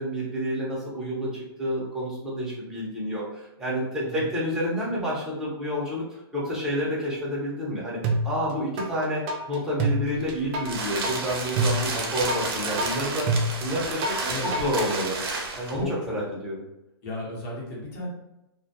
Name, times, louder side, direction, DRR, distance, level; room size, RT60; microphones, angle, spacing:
voice 1, 0.0-8.0 8.2-9.2 9.5-13.3 13.6-14.2 14.4-15.2 15.6-16.6, equal, 5° right, -7 dB, 0.7 m, -29 dB
voice 2, 4.0-4.3 14.1-14.5 15.7-16.2 17.0-18.1, left 2 dB, 45° left, -4 dB, 1.0 m, -34 dB
sound 1, 8.0-8.9 9.3-14.9, right 2 dB, 30° right, 0.3 m, -27 dB
sound 2, 10.2-15.8, right 3 dB, 60° right, 0.7 m, -32 dB
2.2 x 2.2 x 2.7 m, 0.89 s
hypercardioid pair, 140°, 14 cm